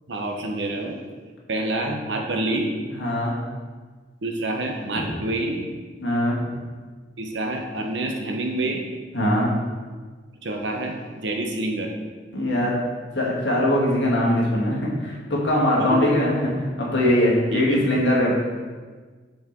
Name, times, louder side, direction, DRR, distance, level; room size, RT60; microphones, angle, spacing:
voice 1, 0.1-1.0 1.5-2.7 4.2-5.7 7.2-8.8 10.4-11.9 15.8-16.1 17.5-17.8, right 2 dB, 90° right, 2 dB, 0.9 m, -27 dB
voice 2, 2.9-3.4 4.9-5.1 6.0-6.5 9.1-9.5 12.3-12.8 13.1-16.5 16.8-18.3, left 1 dB, 75° left, -4 dB, 1.8 m, -21 dB
6.5 x 4.7 x 4.5 m, 1.4 s
head